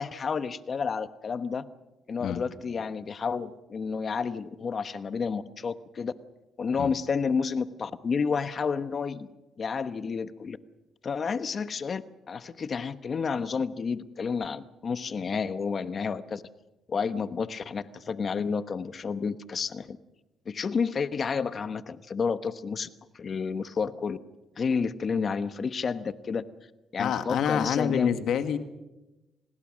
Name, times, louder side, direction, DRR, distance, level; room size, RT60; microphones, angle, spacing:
voice 1, 0.0-1.7 2.1-6.1 6.6-9.3 9.6-10.6 11.0-12.0 12.3-16.4 16.9-20.0 20.5-22.9 23.1-24.2 24.6-26.4 26.9-28.1, left 5 dB, 45° left, 13 dB, 1.1 m, -30 dB
voice 2, 27.0-28.6, left 8 dB, 75° left, 9 dB, 1.8 m, -27 dB
27.0 x 19.5 x 6.4 m, 1.0 s
cardioid pair, 90°, 0 cm